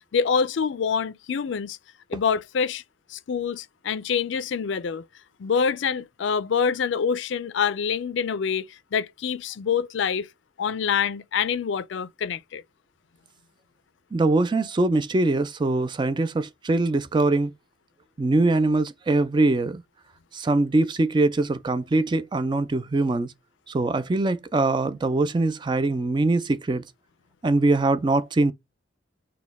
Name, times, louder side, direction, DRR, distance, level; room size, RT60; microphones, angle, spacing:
voice 1, 0.1-1.8 2.1-2.8 3.1-5.0 5.4-8.6 8.9-10.3 10.6-12.6, left 6 dB, 65° left, 0.4 m, -26 dB
voice 2, 14.1-17.5 18.2-19.8 20.3-23.3 23.7-26.8 27.4-28.5, right 2 dB, 25° right, 0.3 m, -22 dB
4.0 x 2.2 x 3.4 m
head